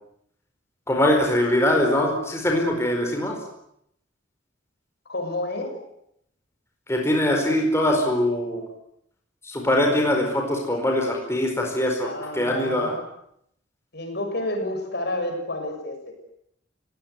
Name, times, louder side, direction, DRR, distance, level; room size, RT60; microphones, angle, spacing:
voice 1, 0.9-3.4 6.9-8.6 9.4-12.1 12.3-12.9, left 1 dB, 15° left, 1 dB, 4.8 m, -22 dB
voice 2, 5.0-5.8 12.0-13.0 13.9-16.1, left 1 dB, 55° left, 4 dB, 6.7 m, -30 dB
30.0 x 18.0 x 9.6 m, 0.75 s
head